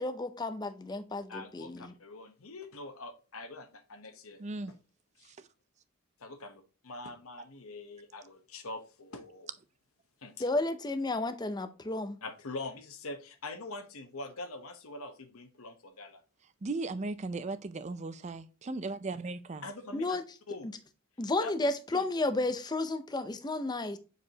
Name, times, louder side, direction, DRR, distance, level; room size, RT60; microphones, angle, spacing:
voice 1, 0.0-1.8 10.4-12.2 19.9-20.2 21.2-24.0, left 2 dB, 20° left, 0.6 m, -32 dB
voice 2, 1.3-4.4 5.2-5.3 6.2-9.5 10.2-10.5 12.2-16.2 19.6-20.2 20.5-20.7 21.4-21.5 21.9-22.1, left 2 dB, 85° left, 1.0 m, -44 dB
voice 3, 4.4-4.7 5.3-5.4 16.6-19.6, right 3 dB, 35° right, 0.4 m, -37 dB
6.8 x 4.8 x 2.8 m
head